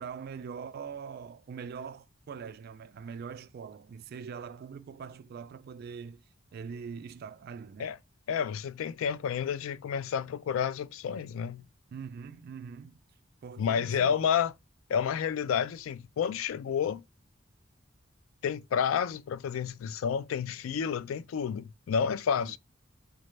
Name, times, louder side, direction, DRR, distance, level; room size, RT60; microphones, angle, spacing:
voice 1, 0.0-6.2 6.5-8.0 11.9-13.0 13.4-14.2 22.4-22.6, right 6 dB, 50° right, 0.3 m, -42 dB
voice 2, 8.3-11.6 13.6-14.5 14.9-17.0 18.4-22.6, left 7 dB, 80° left, 0.3 m, -30 dB
4.0 x 2.2 x 3.2 m
head